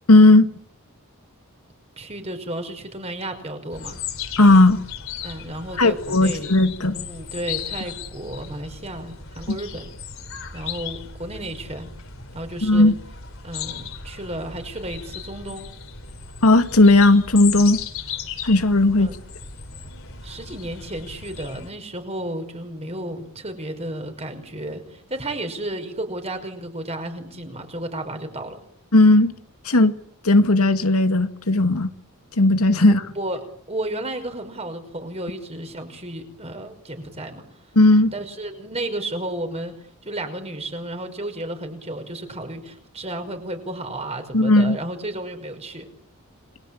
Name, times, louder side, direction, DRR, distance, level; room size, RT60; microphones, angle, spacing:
voice 1, 0.1-0.5 4.4-4.8 5.8-7.0 9.5-9.6 12.6-12.9 16.4-17.8 18.4-19.1 28.9-29.3 29.7-29.9 30.2-31.9 32.4-33.0 37.8-38.1 44.3-44.8, left 2 dB, 80° left, 2.1 m, -15 dB
voice 2, 2.0-4.0 5.2-6.6 6.9-9.9 10.5-11.9 12.3-12.9 13.4-15.7 19.0-19.1 20.2-28.6 32.9-33.4 33.7-37.4 38.1-39.7 40.0-45.9, right 1 dB, 30° right, 5.6 m, -33 dB
sound 1, 3.7-21.7, left 7 dB, 65° left, 3.9 m, -36 dB
29.5 x 22.5 x 8.7 m
head